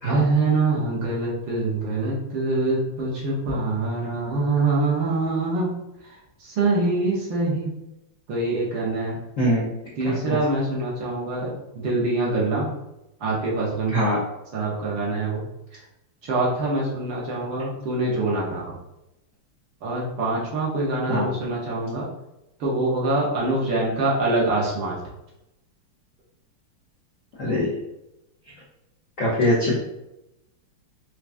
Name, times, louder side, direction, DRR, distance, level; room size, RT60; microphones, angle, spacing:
voice 1, 0.0-5.8 6.4-7.8 8.3-9.2 10.0-12.7 13.2-14.0 14.5-15.4 16.2-18.8 19.8-22.1 22.6-25.0, right 2 dB, 65° right, -5 dB, 1.5 m, -24 dB
voice 2, 10.0-10.4 13.9-14.2 21.1-21.3 27.4-27.8 29.2-29.8, equal, 65° left, -6 dB, 0.7 m, -22 dB
4.5 x 2.3 x 2.5 m, 0.90 s
omnidirectional pair, 2.4 m